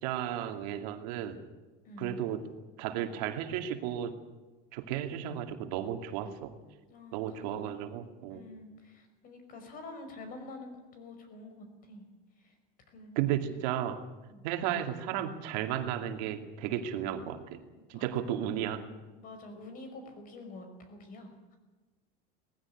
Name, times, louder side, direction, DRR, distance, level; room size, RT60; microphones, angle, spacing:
voice 1, 0.0-1.4 2.0-2.4 2.8-4.1 4.7-6.5 7.1-8.4 13.2-14.0 14.4-17.6 17.9-18.8, right 10 dB, 80° right, 6 dB, 2.5 m, -34 dB
voice 2, 1.8-2.3 6.9-7.8 8.3-12.1 12.4-12.6 12.9-13.1 14.3-14.4 17.7-18.4 19.2-21.6, left 2 dB, 40° left, 7 dB, 5.6 m, -48 dB
19.0 x 15.5 x 10.0 m, 1.2 s
supercardioid pair, 140°, 21 cm